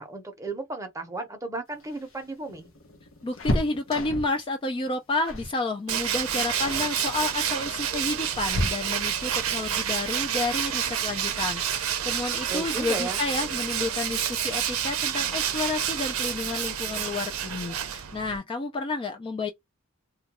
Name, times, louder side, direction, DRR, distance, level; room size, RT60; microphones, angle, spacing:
voice 1, 0.0-2.7 12.5-13.2, right 2 dB, 15° right, 0.7 m, -35 dB
sound 1, 1.7-4.4 5.2-5.6 5.9-6.1 6.6-6.9 7.8-9.2 11.0-11.1 11.5-11.6 12.7-13.2 13.5-13.6 13.9-14.1, left 1 dB, 70° left, 0.7 m, -32 dB
voice 2, 3.2-19.5, left 3 dB, 25° left, 0.3 m, -30 dB
Tools, 5.9-18.4, right 9 dB, 85° right, 0.5 m, -29 dB
2.2 x 2.2 x 2.8 m
head